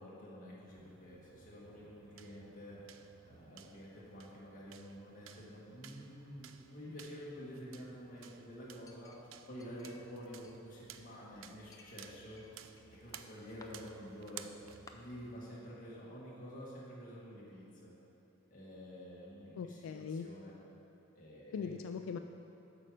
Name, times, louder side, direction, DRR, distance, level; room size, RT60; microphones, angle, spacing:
voice 1, 0.0-12.7 12.9-14.4 14.9-17.9 18.5-20.5 21.2-21.8, equal, 40° left, -6 dB, 1.9 m, -49 dB
sound 1, 0.7-15.5, right 9 dB, 80° right, 0.4 m, -57 dB
Chink clink, 8.9-10.1 10.4-11.2 11.7-12.8 13.1-13.7 14.4-14.5 14.9-15.0, left 4 dB, 15° left, 0.4 m, -60 dB
voice 2, 19.6-20.3 21.5-22.2, left 6 dB, 90° left, 7 dB, 0.3 m, -40 dB
8.6 x 6.2 x 5.0 m, 3.0 s
head